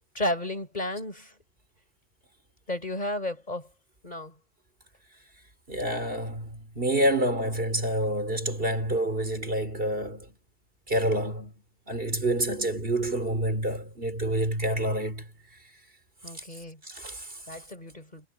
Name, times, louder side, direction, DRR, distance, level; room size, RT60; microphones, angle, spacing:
voice 1, 0.1-1.3 2.7-3.7 4.0-4.4 16.2-16.8 17.5-18.3, left 1 dB, 35° left, 5.2 m, -33 dB
voice 2, 5.7-10.3 10.9-11.5 11.9-15.2 16.8-17.4, right 1 dB, 55° right, 4.0 m, -28 dB
omnidirectional pair, 1.2 m